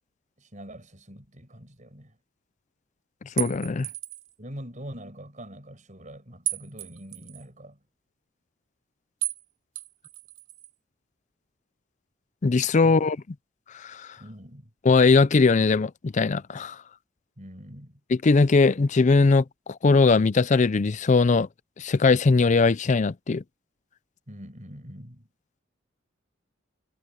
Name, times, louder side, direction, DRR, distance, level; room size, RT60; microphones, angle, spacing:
voice 1, 0.4-2.2 4.4-7.8 12.8-13.0 14.2-14.7 17.4-18.0 24.3-25.3, equal, 40° right, 5.4 m, -43 dB
voice 2, 3.4-3.9 12.4-13.2 13.7-14.0 14.8-16.8 18.2-21.5 21.8-23.4, left 4 dB, 40° left, 0.5 m, -20 dB
sound 1, 3.4-4.3 6.5-7.4 9.2-9.4 9.8-10.7, right 16 dB, 90° right, 1.2 m, -34 dB
head